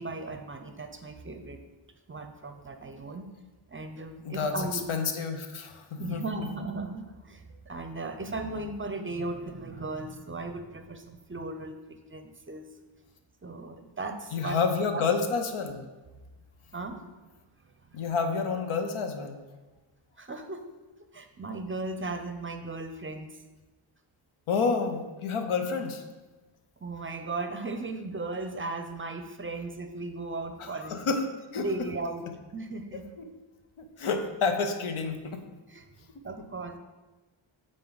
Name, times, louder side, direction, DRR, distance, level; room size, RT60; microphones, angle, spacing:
voice 1, 0.0-1.6 2.1-3.2 3.7-4.9 6.0-12.6 13.4-15.0 16.7-17.1 17.8-18.1 20.2-20.6 21.1-23.4 26.8-31.0 31.6-32.3 32.5-33.0 35.7-35.9 36.2-36.8, right 2 dB, 25° right, 7 dB, 0.5 m, -37 dB
voice 2, 4.2-6.5 14.3-15.8 17.9-19.4 24.5-26.0 30.6-31.2 31.5-31.6 33.8-35.4, left 5 dB, 90° left, 6 dB, 0.9 m, -29 dB
9.2 x 3.9 x 3.9 m, 1.2 s
wide cardioid pair, 115°, 48 cm